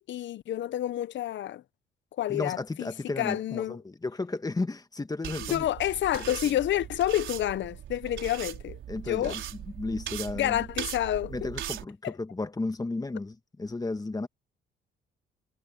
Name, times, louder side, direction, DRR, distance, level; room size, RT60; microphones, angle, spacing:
voice 1, 0.0-1.6 2.2-2.9 3.2-3.8 5.4-8.8 9.0-9.4 10.3-11.3 12.0-12.1, left 12 dB, 65° left, 0.8 m, -29 dB
voice 2, 2.3-5.6 6.1-6.4 8.9-9.4 9.8-10.7 11.3-14.3, left 3 dB, 20° left, 1.4 m, -33 dB
sound 1, 5.2-11.8, right 11 dB, 75° right, 4.6 m, -39 dB
cardioid pair, 90°, 20 cm